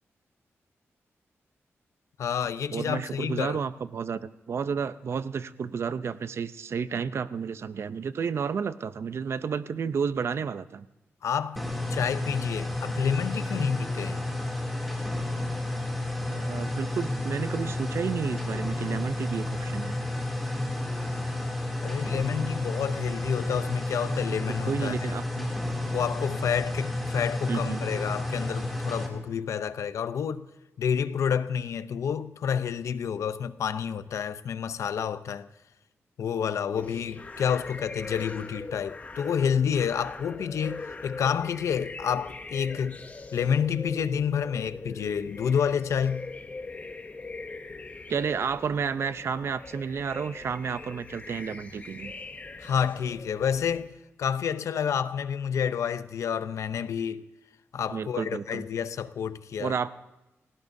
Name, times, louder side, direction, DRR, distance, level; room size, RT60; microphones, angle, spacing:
voice 1, 2.2-3.6 11.2-11.6 11.9-14.2 21.8-25.1 25.8-30.5 30.8-35.5 36.2-43.0 43.3-46.3 52.6-53.9 54.2-57.3 57.7-59.7, left 7 dB, 85° left, 0.6 m, -29 dB
voice 2, 2.7-10.9 16.2-20.0 24.6-25.5 27.5-27.8 48.1-52.1 57.9-58.7 59.6-59.9, right 6 dB, 60° right, 0.6 m, -31 dB
sound 1, 11.6-29.1, left 1 dB, ahead, 2.7 m, -31 dB
sound 2, 36.8-53.9, left 3 dB, 30° left, 0.8 m, -41 dB
29.5 x 17.0 x 2.7 m
wide cardioid pair, 135°, 5 cm